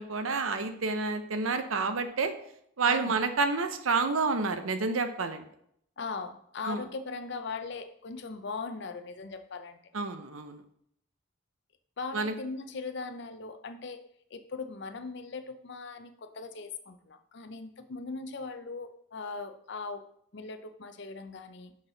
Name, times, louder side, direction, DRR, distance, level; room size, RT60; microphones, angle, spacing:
voice 1, 0.0-2.3 2.8-5.4 6.6-6.8 9.9-10.6 12.1-12.3, right 4 dB, 80° right, 8 dB, 0.8 m, -29 dB
voice 2, 6.0-9.8 12.0-14.0 14.3-20.1 20.3-21.8, left 4 dB, 55° left, 9 dB, 0.6 m, -39 dB
6.4 x 5.6 x 3.9 m, 0.70 s
head